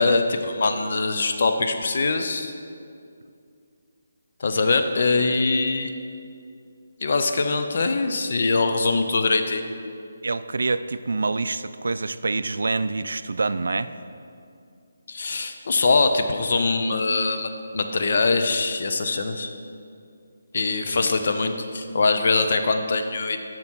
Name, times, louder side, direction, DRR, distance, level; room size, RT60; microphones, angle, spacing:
voice 1, 0.0-2.5 4.4-5.9 7.0-9.7 15.1-19.5 20.5-23.4, left 3 dB, 55° left, 6 dB, 0.6 m, -23 dB
voice 2, 10.2-13.9, right 3 dB, 70° right, 13 dB, 0.3 m, -26 dB
8.5 x 6.0 x 4.5 m, 2.4 s
figure-of-eight pair, 150°, 0 cm